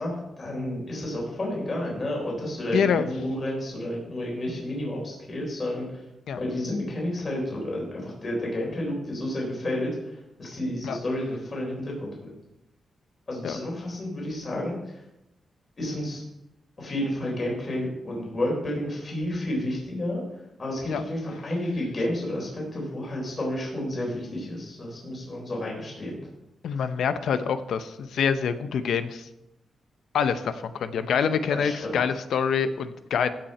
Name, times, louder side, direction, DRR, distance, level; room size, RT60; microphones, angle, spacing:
voice 1, 0.0-6.0 6.3-12.3 13.3-14.8 15.8-16.2 16.8-20.2 20.6-26.2 31.5-31.9, left 1 dB, 35° left, -2 dB, 4.0 m, -31 dB
voice 2, 2.7-3.1 6.3-6.4 10.8-11.0 13.4-13.6 20.9-21.0 26.6-29.3 30.1-33.3, left 7 dB, 80° left, 11 dB, 0.7 m, -26 dB
16.0 x 5.8 x 4.3 m, 0.90 s
cardioid pair, 115°, 0 cm